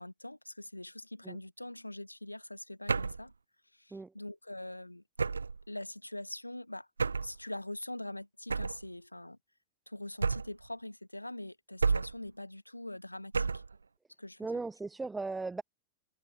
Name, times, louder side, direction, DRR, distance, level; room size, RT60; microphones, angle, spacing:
voice 1, 0.0-3.3 3.7-5.0 5.7-6.9 7.2-9.4 9.9-13.6 14.2-14.6, left 1 dB, 85° left, 1.2 m, -43 dB
sound 1, 2.9-3.3 5.2-5.6 7.0-7.4 8.5-8.9 10.2-10.7 11.8-12.3 13.3-13.8, right 4 dB, 75° right, 0.6 m, -31 dB
voice 2, 14.4-15.6, right 3 dB, 10° right, 0.3 m, -37 dB
figure-of-eight pair, 90°, 0 cm